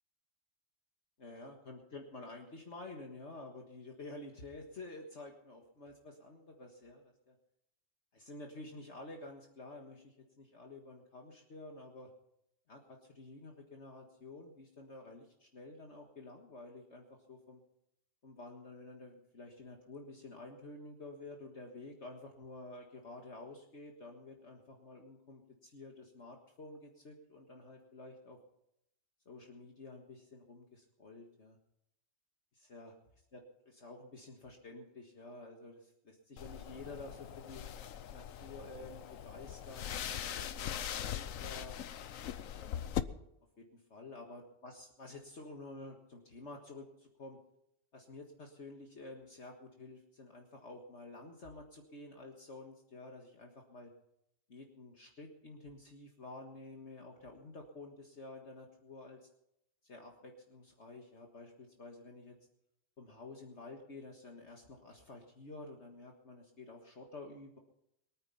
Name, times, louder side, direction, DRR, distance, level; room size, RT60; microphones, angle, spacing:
voice 1, 1.2-7.4 8.1-12.1 12.7-17.6 18.2-28.4 29.3-31.6 32.5-32.9 33.3-37.6 38.1-41.8 42.6-42.9 43.6-47.4 47.9-53.9 54.5-59.3 59.8-62.4 63.0-67.6, left 2 dB, 60° left, 1 dB, 1.9 m, -50 dB
sound 1, 36.4-43.0, left 10 dB, 85° left, 1.2 m, -41 dB
23.0 x 9.4 x 5.7 m, 0.79 s
omnidirectional pair, 1.4 m